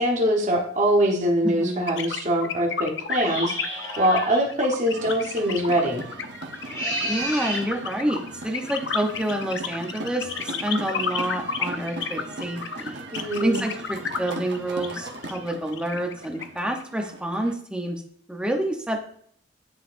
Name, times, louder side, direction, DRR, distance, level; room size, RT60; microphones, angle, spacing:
voice 1, 0.0-6.0 13.1-13.6, equal, 40° right, -1 dB, 1.1 m, -23 dB
voice 2, 1.4-1.9 7.0-13.0 13.4-18.0 18.3-19.0, right 1 dB, 5° right, 2 dB, 0.8 m, -28 dB
sound 1, 1.9-16.8, left 6 dB, 70° left, 0.6 m, -31 dB
sound 2, 3.2-4.5 6.5-7.7, right 1 dB, 20° left, 2.3 m, -30 dB
sound 3, 4.9-17.5, right 2 dB, 65° right, 0.9 m, -39 dB
9.6 x 4.0 x 2.6 m, 0.62 s
head